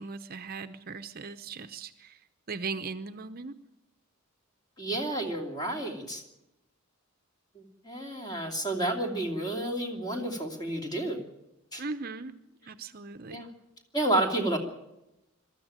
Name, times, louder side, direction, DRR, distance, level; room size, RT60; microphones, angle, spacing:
voice 1, 0.0-2.2 2.5-3.5 11.8-12.3 12.7-13.5, right 4 dB, 45° right, 10 dB, 0.7 m, -38 dB
voice 2, 4.8-6.2 7.5-11.2 11.7-11.8 13.3-13.5 13.9-14.6, right 1 dB, 20° left, 3 dB, 3.0 m, -30 dB
22.5 x 13.5 x 8.9 m, 0.92 s
head